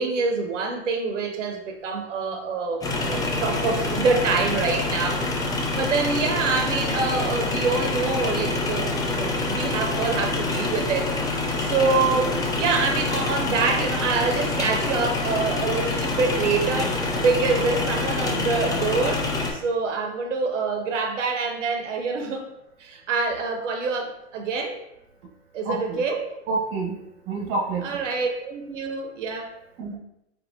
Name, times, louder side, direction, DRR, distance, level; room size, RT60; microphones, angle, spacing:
voice 1, 0.0-5.2 5.5-11.1 11.6-22.4 22.8-24.8 25.5-26.4 27.8-29.5, right 4 dB, 85° right, 4 dB, 0.8 m, -26 dB
sound 1, 2.8-19.5, left 2 dB, 10° left, 0.4 m, -26 dB
voice 2, 25.6-26.0 26.5-27.0 27.3-28.0 29.8-30.0, right 3 dB, 40° right, 0 dB, 1.1 m, -28 dB
4.5 x 2.9 x 2.7 m, 0.84 s
hypercardioid pair, 110°, 36 cm